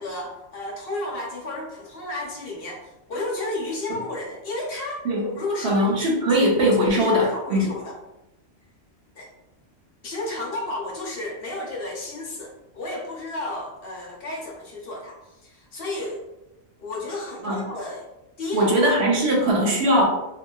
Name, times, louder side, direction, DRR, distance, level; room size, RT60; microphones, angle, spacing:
voice 1, 0.0-5.9 6.3-6.5 6.8-8.0 9.1-9.3 10.0-16.2 16.8-18.1 18.4-18.9 19.1-19.4, left 2 dB, 55° left, -2 dB, 0.8 m, -32 dB
voice 2, 5.6-7.7 17.4-17.6 18.5-20.0, equal, 65° right, -2 dB, 0.9 m, -20 dB
2.7 x 2.6 x 2.2 m, 0.94 s
omnidirectional pair, 1.3 m